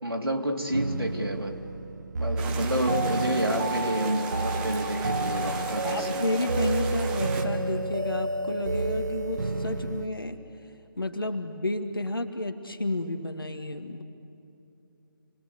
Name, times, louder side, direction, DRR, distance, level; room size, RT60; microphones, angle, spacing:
voice 1, 0.0-1.6 2.2-6.3, right 1 dB, 85° right, 1 dB, 3.0 m, -29 dB
sound 1, 0.7-10.1, right 2 dB, 50° right, 1.0 m, -30 dB
sound 2, 2.4-7.4, right 4 dB, 5° right, 0.8 m, -38 dB
voice 2, 5.8-10.4 11.0-14.0, left 1 dB, 70° left, 5 dB, 2.0 m, -31 dB
28.5 x 22.5 x 8.3 m, 2.8 s
figure-of-eight pair, 150°, 12 cm